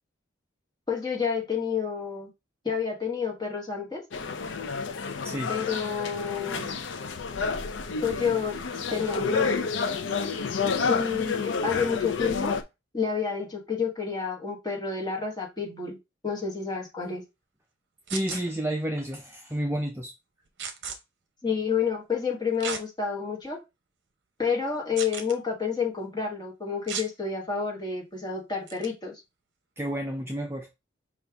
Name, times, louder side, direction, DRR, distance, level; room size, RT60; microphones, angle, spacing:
voice 1, 0.9-2.3 2.6-4.0 5.5-6.8 8.0-8.6 8.9-9.7 10.9-12.5 12.9-16.0 16.2-17.2 21.4-23.6 24.4-29.1, left 6 dB, 20° left, 1.3 m, -29 dB
sound 1, 4.1-12.6, left 5 dB, 65° left, 0.5 m, -30 dB
voice 2, 18.1-20.1 29.8-30.7, right 1 dB, 10° right, 0.5 m, -30 dB
sound 2, 18.1-18.4 20.6-21.0 22.6-22.8 23.4-23.5 25.0-25.3 26.9-27.1 28.7-28.9, right 6 dB, 60° right, 0.7 m, -34 dB
5.3 x 2.5 x 3.4 m
head